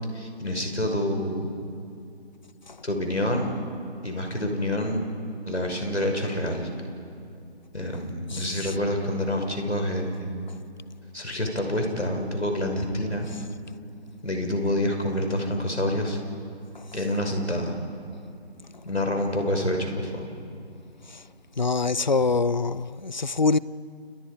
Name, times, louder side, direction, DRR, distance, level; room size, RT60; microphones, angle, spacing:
voice 1, 0.1-1.5 2.8-3.6 4.0-5.1 5.5-6.7 7.7-10.3 11.1-13.3 14.2-16.2 16.9-17.7 18.8-20.3, left 1 dB, 85° left, 6.0 m, -27 dB
voice 2, 8.3-8.7 16.7-16.9 21.1-21.2 21.6-23.6, left 4 dB, 45° left, 0.5 m, -25 dB
30.0 x 29.5 x 5.1 m
figure-of-eight pair, 160°, 33 cm